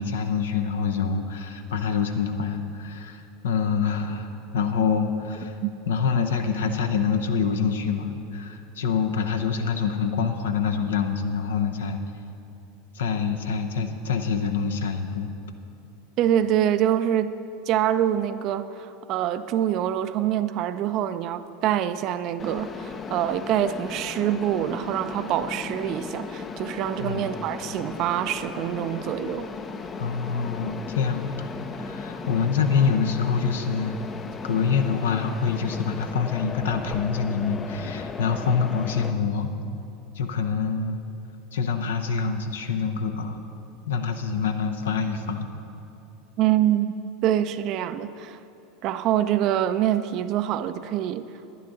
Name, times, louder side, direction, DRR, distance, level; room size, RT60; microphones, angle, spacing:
voice 1, 0.0-5.5 5.9-12.0 12.9-15.3 27.0-27.3 30.0-34.0 34.4-39.5 40.2-41.0 41.5-43.4 43.9-45.5, left 6 dB, 75° left, 6 dB, 0.7 m, -26 dB
voice 2, 16.2-17.3 17.7-29.5 46.4-48.4 48.8-51.3, right 11 dB, 50° right, 12 dB, 0.4 m, -25 dB
Mechanisms, 22.4-39.1, left 4 dB, 30° left, 0.5 m, -36 dB
11.0 x 10.5 x 3.9 m, 2.8 s
hypercardioid pair, 85°, 0 cm